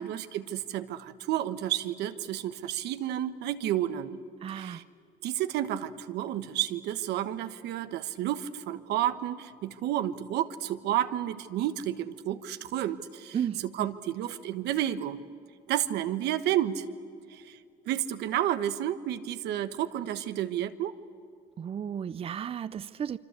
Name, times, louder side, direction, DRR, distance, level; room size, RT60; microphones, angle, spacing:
voice 1, 0.0-4.2 4.5-4.8 5.2-13.4 13.6-15.2 15.7-16.8 17.3-17.6 17.9-20.9, right 12 dB, 80° right, 11 dB, 1.3 m, -31 dB
voice 2, 4.4-4.8 13.3-13.9 21.6-23.2, right 8 dB, 35° right, 16 dB, 0.6 m, -34 dB
25.5 x 25.5 x 8.3 m, 2.5 s
cardioid pair, 110°, 17 cm